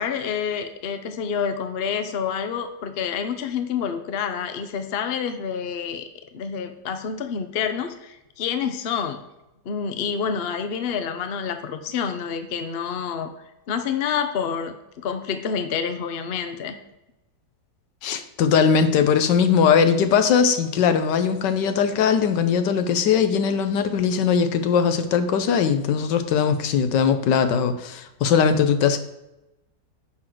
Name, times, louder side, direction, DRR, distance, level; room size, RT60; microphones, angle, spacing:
voice 1, 0.0-9.2 9.6-13.3 13.7-16.8, left 7 dB, 55° left, 8 dB, 0.6 m, -28 dB
voice 2, 18.0-29.0, left 6 dB, 75° left, 9 dB, 1.3 m, -20 dB
10.0 x 6.0 x 3.9 m, 0.92 s
omnidirectional pair, 2.0 m